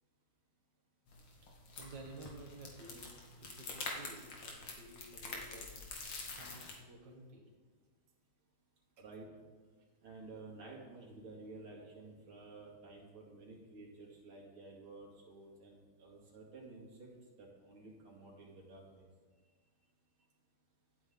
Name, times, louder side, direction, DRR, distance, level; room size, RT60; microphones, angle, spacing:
sound 1, 1.1-6.7, left 3 dB, 70° left, 2.7 m, -46 dB
voice 1, 1.8-5.7 6.3-7.5 9.0-9.1 19.4-19.5, right 2 dB, 55° right, -1 dB, 2.3 m, -53 dB
voice 2, 9.0-9.3 10.0-17.1 17.4-19.1, right 3 dB, 75° right, -2 dB, 3.3 m, -52 dB
24.5 x 8.9 x 3.9 m, 1.4 s
omnidirectional pair, 2.4 m